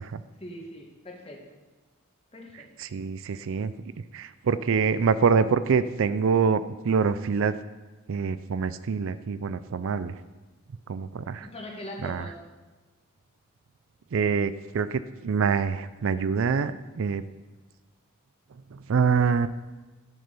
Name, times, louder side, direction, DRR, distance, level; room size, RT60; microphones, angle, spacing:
voice 1, 0.4-1.6 2.3-2.7 11.4-12.4, left 1 dB, 30° left, 0 dB, 1.9 m, -41 dB
voice 2, 2.8-3.7 4.1-7.6 8.1-10.1 10.9-11.5 12.0-12.2 14.1-16.7 17.0-17.2 18.9-19.5, right 5 dB, 65° right, 14 dB, 0.4 m, -25 dB
12.5 x 6.5 x 5.3 m, 1.2 s
head